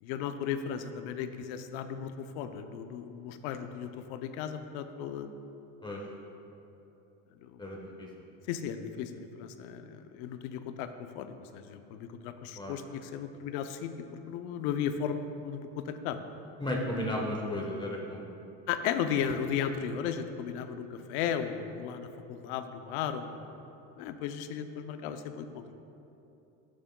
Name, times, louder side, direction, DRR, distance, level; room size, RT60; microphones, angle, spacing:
voice 1, 0.0-5.3 7.4-7.6 8.5-16.2 18.7-23.5 24.0-25.6, left 8 dB, 75° left, 9 dB, 0.6 m, -35 dB
voice 2, 7.6-8.1 12.6-12.8 16.6-18.2, left 1 dB, 15° left, -1 dB, 1.1 m, -34 dB
11.0 x 8.5 x 2.3 m, 2.9 s
supercardioid pair, 110°, 33 cm